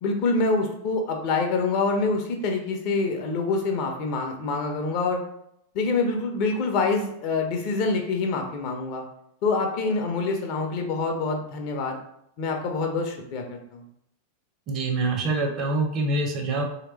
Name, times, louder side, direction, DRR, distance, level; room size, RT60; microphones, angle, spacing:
voice 1, 0.0-5.2 5.7-9.0 9.4-12.0 12.4-13.8, left 3 dB, 45° left, 3 dB, 0.6 m, -26 dB
voice 2, 14.7-16.6, right 2 dB, 35° right, 2 dB, 0.7 m, -25 dB
3.2 x 2.9 x 3.1 m, 0.76 s
figure-of-eight pair, 90°, 0 cm